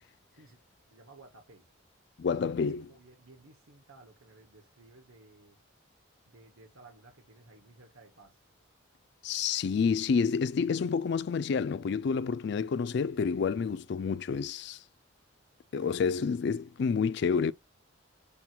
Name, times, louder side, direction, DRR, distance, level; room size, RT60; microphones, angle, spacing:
voice 1, 0.3-0.6 0.9-1.7 2.2-5.6 6.3-8.4, right 2 dB, 85° right, 1.1 m, -56 dB
voice 2, 2.2-2.8 9.2-14.8 15.7-17.5, left 5 dB, 55° left, 0.3 m, -29 dB
7.1 x 3.1 x 2.3 m
head